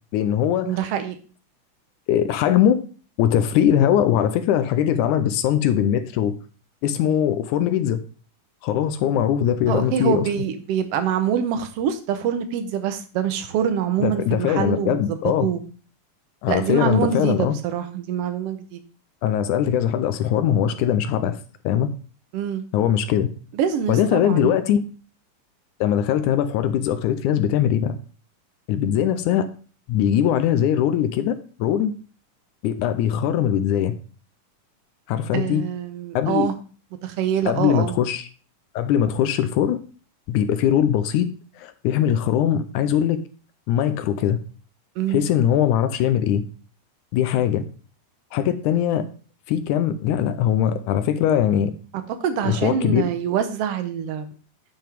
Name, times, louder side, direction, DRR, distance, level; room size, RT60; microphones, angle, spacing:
voice 1, 0.1-0.8 2.1-2.8 3.2-6.4 6.8-8.0 8.6-10.3 14.0-15.5 16.4-17.6 19.2-21.4 21.6-21.9 22.7-23.3 23.9-24.8 25.8-28.0 28.7-29.5 29.9-31.9 32.6-34.0 35.1-35.6 36.2-36.5 37.5-38.3 38.8-39.8 40.3-41.3 41.6-43.2 43.7-44.4 45.1-46.4 47.1-47.6 48.3-49.0 49.5-51.7 52.4-53.1, left 10 dB, 80° left, 11 dB, 2.0 m, -21 dB
voice 2, 0.7-1.2 9.7-15.6 16.5-18.8 22.3-22.6 23.6-24.5 35.3-36.5 37.0-37.9 45.0-45.2 52.2-54.3, right 9 dB, 85° right, 8 dB, 1.3 m, -25 dB
10.0 x 5.6 x 3.4 m, 0.38 s
omnidirectional pair, 3.7 m